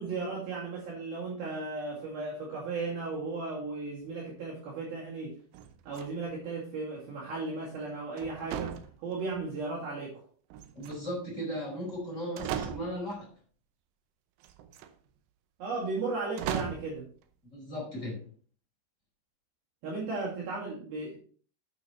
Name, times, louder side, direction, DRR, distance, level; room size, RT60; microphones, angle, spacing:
voice 1, 0.0-5.4 5.9-10.2 15.6-17.1 19.8-21.2, right 3 dB, 55° right, -6 dB, 3.8 m, -35 dB
sound 1, 5.5-6.4 8.2-9.5 10.5-11.3 12.0-12.1 12.4-13.2 14.4-14.9 16.4-17.0, right 9 dB, 80° right, 2.5 m, -38 dB
voice 2, 10.7-13.3 17.5-18.2, equal, 15° left, -3 dB, 4.3 m, -36 dB
9.3 x 8.6 x 3.1 m, 0.42 s
omnidirectional pair, 5.6 m